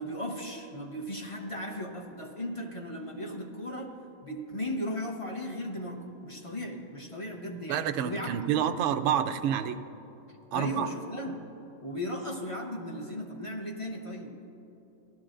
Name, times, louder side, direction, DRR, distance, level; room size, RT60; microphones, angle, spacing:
voice 1, 0.0-4.0 4.2-8.4 10.5-11.5 11.8-14.4, equal, 25° left, 1 dB, 0.7 m, -36 dB
voice 2, 7.7-9.8 10.5-10.9, right 9 dB, 70° right, 7 dB, 0.6 m, -28 dB
17.5 x 12.5 x 2.5 m, 3.0 s
omnidirectional pair, 1.8 m